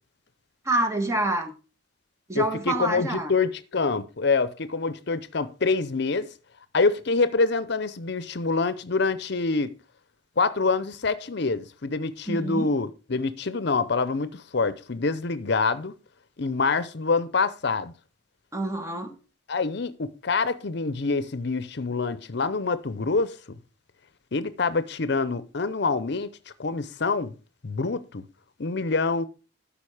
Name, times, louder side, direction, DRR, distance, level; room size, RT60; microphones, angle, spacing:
voice 1, 0.6-1.5 2.3-3.3 12.3-12.7 18.5-19.2, right 2 dB, 15° right, 1.5 m, -27 dB
voice 2, 2.3-6.3 6.7-9.7 10.4-15.9 16.4-17.9 19.5-23.6 24.3-26.3 26.6-27.3 27.6-28.2 28.6-29.3, left 4 dB, 60° left, 0.7 m, -26 dB
13.0 x 5.3 x 4.9 m
head